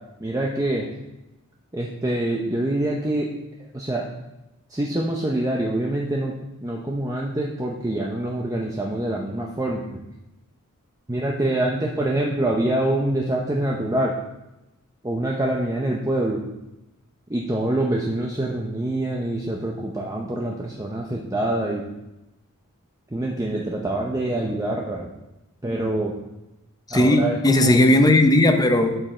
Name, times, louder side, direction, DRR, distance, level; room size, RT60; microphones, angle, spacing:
voice 1, 0.2-0.9 1.7-3.3 3.7-4.0 4.7-6.3 6.6-10.0 11.1-14.1 15.0-16.4 17.3-21.8 23.1-25.1 25.6-26.1 26.9-27.8, right 1 dB, 15° right, -2 dB, 0.7 m, -25 dB
voice 2, 26.9-29.0, left 1 dB, 20° left, 6 dB, 0.7 m, -17 dB
11.5 x 5.3 x 4.4 m, 0.96 s
head